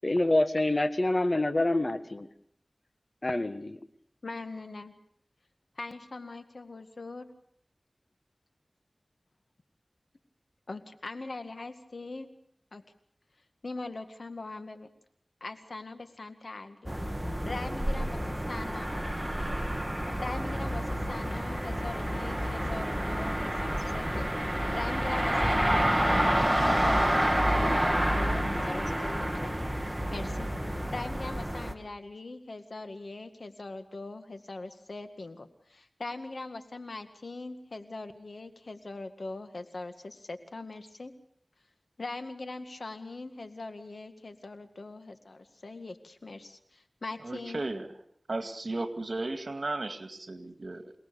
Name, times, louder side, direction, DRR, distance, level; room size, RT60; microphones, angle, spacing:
voice 1, 0.0-2.3 3.2-3.8, left 1 dB, 50° left, 10 dB, 1.6 m, -26 dB
voice 2, 4.2-4.9 5.8-7.3 10.7-12.3 12.7-12.8 13.6-14.9 15.4-16.9 17.5-18.2 18.5-18.9 20.2-24.5 24.7-26.3 26.7-29.5 30.1-41.1 42.0-47.6, left 3 dB, 80° left, 8 dB, 2.0 m, -41 dB
sound 1, 16.9-31.7, equal, 10° right, 2.3 m, -29 dB
voice 3, 47.2-47.9 48.3-50.9, right 2 dB, 75° right, 8 dB, 2.1 m, -35 dB
27.5 x 19.0 x 6.9 m, 0.67 s
wide cardioid pair, 40°, 0 cm